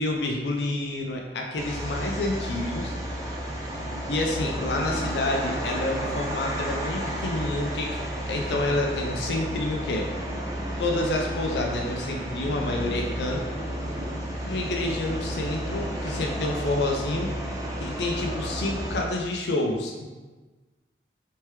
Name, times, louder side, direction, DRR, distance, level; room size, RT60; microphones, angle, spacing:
voice 1, 0.0-2.9 4.1-10.1 10.8-13.6 14.4-17.3 17.8-20.1, left 2 dB, 75° left, 1 dB, 0.4 m, -28 dB
sound 1, 1.6-19.0, right 1 dB, 20° right, 0.4 m, -32 dB
3.3 x 3.2 x 3.1 m, 1.3 s
head